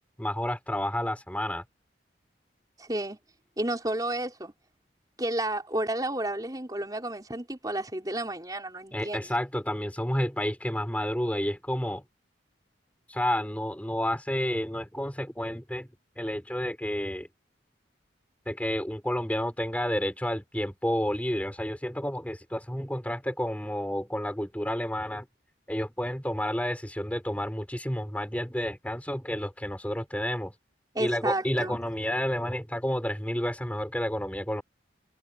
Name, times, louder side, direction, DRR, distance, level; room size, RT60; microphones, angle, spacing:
voice 1, 0.2-1.6 8.9-12.0 13.1-15.9 16.2-17.3 18.5-25.3 25.7-30.5 31.0-34.6, equal, 10° left, 5.4 m, -30 dB
voice 2, 2.8-3.2 3.6-4.5 5.2-9.2 30.9-31.8, right 1 dB, 20° right, 5.0 m, -31 dB
head